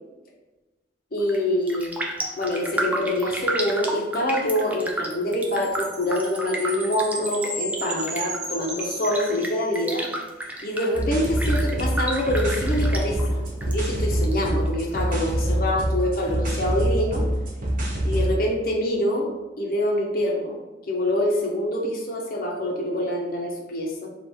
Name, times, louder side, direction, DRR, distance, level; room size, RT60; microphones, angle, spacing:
voice 1, 1.1-2.0 2.4-10.1 10.6-17.3 18.0-19.3 19.6-20.6 20.9-24.1, left 1 dB, 50° left, -1 dB, 0.8 m, -25 dB
Raindrop, 1.2-1.4 1.7-13.7 14.0-15.0 15.4-15.5, right 1 dB, 10° right, 0.3 m, -32 dB
Chime, 5.4-9.9, right 2 dB, 65° right, 1.1 m, -35 dB
sound 1, 10.9-18.3, right 1 dB, 45° right, 0.8 m, -25 dB
3.4 x 2.5 x 4.4 m, 1.1 s
head